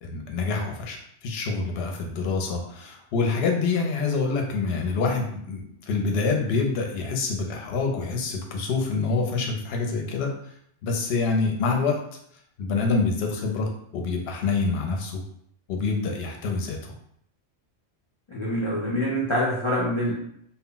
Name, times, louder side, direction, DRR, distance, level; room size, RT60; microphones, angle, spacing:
voice 1, 0.0-10.3 10.8-12.0 12.6-15.2 15.7-16.9, left 4 dB, 70° left, 1 dB, 0.8 m, -26 dB
voice 2, 18.3-20.1, equal, 45° left, -6 dB, 0.4 m, -25 dB
2.1 x 2.0 x 3.7 m, 0.69 s
omnidirectional pair, 1.2 m